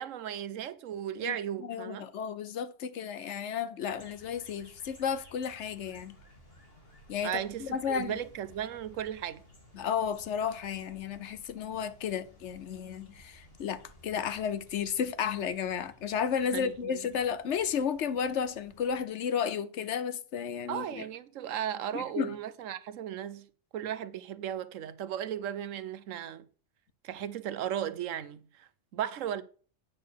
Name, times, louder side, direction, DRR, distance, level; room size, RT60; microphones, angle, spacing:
voice 1, 0.0-2.0 7.2-9.4 16.5-17.1 20.7-23.5 23.7-26.5 27.0-29.4, right 10 dB, 90° right, 1.1 m, -36 dB
voice 2, 1.6-6.2 7.1-8.1 9.7-21.0 21.9-22.3, left 7 dB, 70° left, 1.0 m, -33 dB
sound 1, 3.9-19.0, equal, 50° left, 3.4 m, -57 dB
9.0 x 6.6 x 6.4 m
omnidirectional pair, 1.3 m